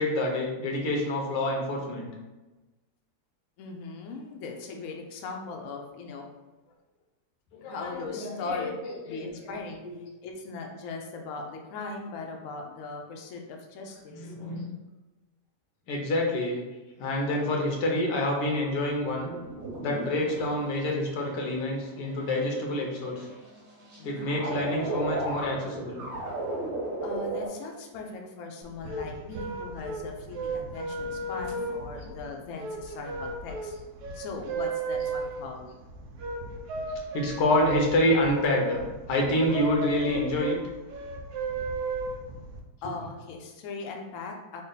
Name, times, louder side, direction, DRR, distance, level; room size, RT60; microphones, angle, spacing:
voice 1, 0.0-2.1 7.5-10.0 13.9-14.7 15.9-16.6 17.0-19.3 19.8-23.3 24.0-26.0 30.9-32.2 37.1-38.8 39.1-40.6 42.8-42.9, left 1 dB, 85° left, 0 dB, 1.4 m, -28 dB
voice 2, 3.6-6.3 7.6-8.7 9.0-9.8 10.2-14.3 20.2-20.4 24.0-24.2 27.0-33.7 34.1-35.7 42.8-44.6, left 4 dB, 65° left, 2 dB, 0.8 m, -39 dB
sound 1, 19.0-27.5, right 2 dB, 50° right, 1.3 m, -36 dB
sound 2, 28.6-42.6, right 3 dB, 75° right, 1.2 m, -35 dB
3.7 x 2.2 x 3.9 m, 1.1 s
omnidirectional pair, 1.8 m